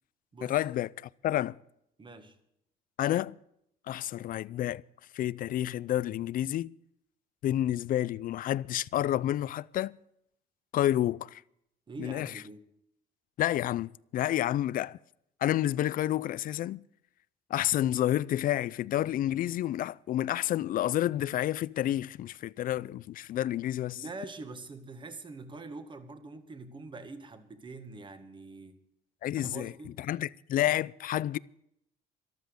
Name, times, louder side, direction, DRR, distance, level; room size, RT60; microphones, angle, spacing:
voice 1, 0.4-0.9 1.2-1.6 3.0-3.4 3.9-4.8 5.1-6.7 7.4-10.0 10.7-11.4 12.0-12.3 13.4-15.0 15.4-16.8 17.5-24.0 29.2-29.7 30.0-31.4, left 12 dB, 55° left, 0.5 m, -29 dB
voice 2, 2.0-2.4 11.9-12.6 23.9-28.8 29.4-29.9, right 3 dB, 30° right, 1.9 m, -44 dB
13.5 x 12.5 x 6.5 m
cardioid pair, 110°, 17 cm